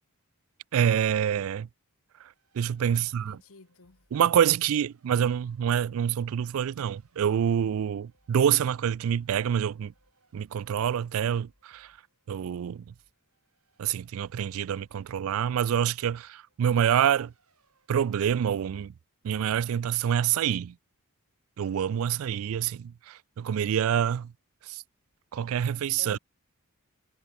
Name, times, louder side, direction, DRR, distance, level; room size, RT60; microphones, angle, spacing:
voice 1, 0.7-1.7 2.6-3.4 4.1-9.9 10.3-11.9 12.3-12.8 13.8-17.3 17.9-18.9 19.2-20.7 21.6-24.3 24.7-24.8 25.3-26.2, right 9 dB, 65° right, 0.3 m, -26 dB
Race car auto racing, 2.2-17.9, right 4 dB, 80° right, 6.5 m, -72 dB
voice 2, 2.8-4.1 26.0-26.2, left 4 dB, 70° left, 1.3 m, -50 dB
sound 1, 3.8-4.2 5.1-6.0 6.8-7.2 8.1-9.1 9.8-10.2 11.1-12.1 12.8-13.2 14.1-15.1, equal, 35° left, 5.0 m, -68 dB
head